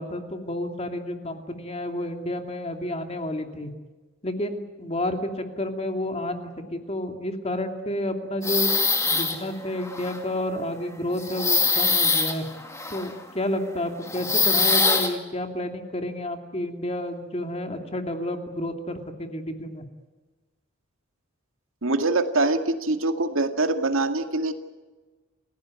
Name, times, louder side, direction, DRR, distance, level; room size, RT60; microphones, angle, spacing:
voice 1, 0.0-3.7 4.2-8.7 9.0-12.4 12.9-19.9, left 1 dB, 30° left, 5 dB, 2.6 m, -30 dB
sound 1, 8.4-9.5 9.8-10.2 11.2-13.2 14.1-15.1, left 4 dB, 15° left, 2.2 m, -23 dB
voice 2, 21.8-24.5, right 2 dB, 85° right, 7 dB, 2.1 m, -24 dB
29.5 x 16.0 x 9.4 m, 1.3 s
head